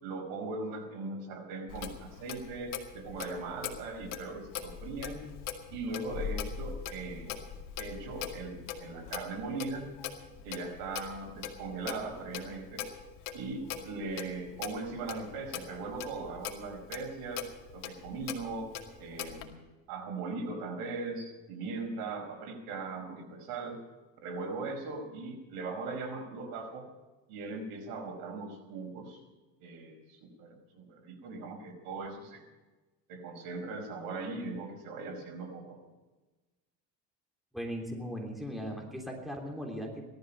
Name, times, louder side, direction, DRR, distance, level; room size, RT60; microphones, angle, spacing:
voice 1, 0.0-5.2 5.7-7.4 7.8-10.0 10.4-12.8 13.3-19.6 19.9-23.8 24.2-26.9 27.3-29.2 29.6-32.4 33.1-35.8, right 3 dB, 75° right, 3 dB, 4.9 m, -39 dB
Clock, 1.7-19.5, left 8 dB, 60° left, 2.2 m, -42 dB
voice 2, 37.5-40.1, equal, ahead, 0 dB, 3.4 m, -38 dB
18.0 x 13.0 x 5.6 m, 1.2 s
cardioid pair, 125°, 36 cm